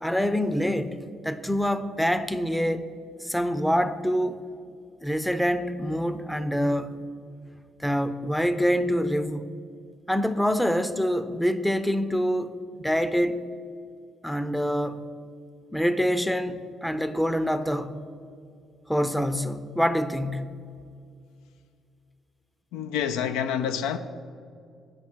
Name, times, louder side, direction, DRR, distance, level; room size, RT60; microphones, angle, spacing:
voice 1, 0.0-1.0 1.2-2.9 3.2-4.5 5.0-7.0 7.8-9.5 10.1-13.4 14.2-15.1 15.7-18.0 18.9-20.6, equal, 5° left, 0.5 m, -26 dB
voice 2, 22.7-24.0, left 8 dB, 75° left, 0.3 m, -27 dB
8.7 x 5.5 x 4.5 m
hypercardioid pair, 50°, 0 cm